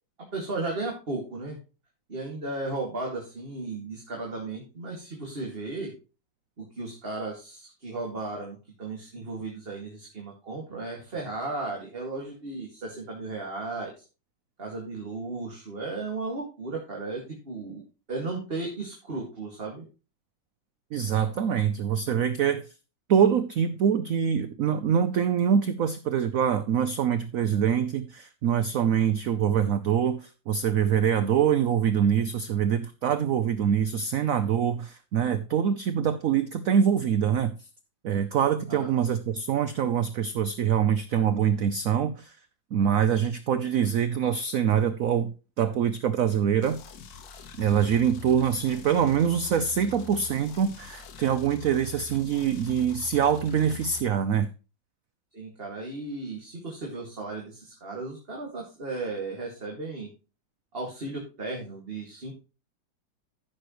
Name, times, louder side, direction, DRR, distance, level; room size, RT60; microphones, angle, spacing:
voice 1, 0.3-1.6 2.1-5.9 6.6-13.9 14.6-17.8 18.1-19.8 38.7-38.9 55.3-60.1 60.7-62.4, right 3 dB, 30° right, -1 dB, 2.2 m, -35 dB
voice 2, 20.9-22.7 23.1-37.7 38.0-42.3 42.7-46.8 47.6-54.5, right 8 dB, 65° right, 12 dB, 0.8 m, -24 dB
sound 1, 46.6-54.0, left 7 dB, 60° left, 1.4 m, -45 dB
14.5 x 6.5 x 3.1 m, 0.32 s
omnidirectional pair, 2.1 m